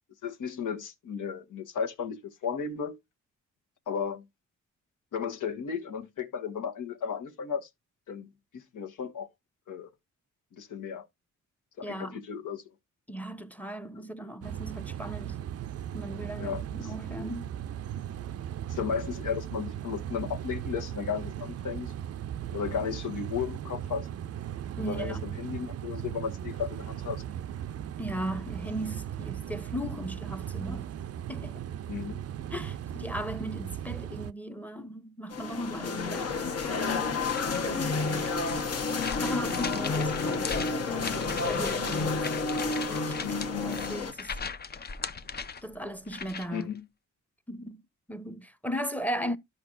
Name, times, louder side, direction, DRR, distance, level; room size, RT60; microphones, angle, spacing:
voice 1, 0.2-3.0 3.9-4.3 5.1-7.7 8.1-9.3 9.7-9.9 10.5-11.0 11.8-12.6 16.4-16.6 18.7-21.9 22.5-24.1 24.9-27.2 31.9-32.2 36.2-36.5 46.5-46.8, left 7 dB, 75° left, 1.5 m, -34 dB
voice 2, 11.8-12.2 13.1-15.4 15.9-17.6 24.8-25.4 28.0-30.9 31.3-31.6 32.5-37.3 37.6-38.3 39.2-42.5 42.9-44.4 45.6-46.7 47.5-47.8 48.1-49.4, equal, 5° left, 0.9 m, -37 dB
sound 1, 14.4-34.3, right 10 dB, 50° right, 0.5 m, -37 dB
sound 2, 35.3-44.1, left 4 dB, 50° left, 1.2 m, -30 dB
sound 3, 37.1-46.6, left 5 dB, 30° left, 0.6 m, -39 dB
12.5 x 5.1 x 2.5 m
cardioid pair, 80°, 31 cm